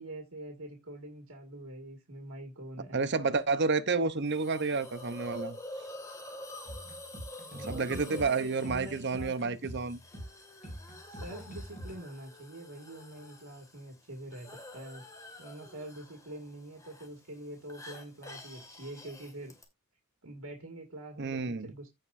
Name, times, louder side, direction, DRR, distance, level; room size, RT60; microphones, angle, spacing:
voice 1, 0.0-3.0 7.5-9.6 10.7-15.0 15.4-19.5 20.2-21.9, right 1 dB, 75° right, 2.1 m, -45 dB
voice 2, 2.9-5.6 7.5-10.0 21.2-21.7, right 4 dB, 55° right, 0.8 m, -30 dB
Hiss, 4.2-19.6, left 1 dB, 15° left, 2.0 m, -48 dB
sound 1, 6.7-12.0, equal, 35° left, 6.9 m, -44 dB
15.5 x 5.2 x 2.6 m
head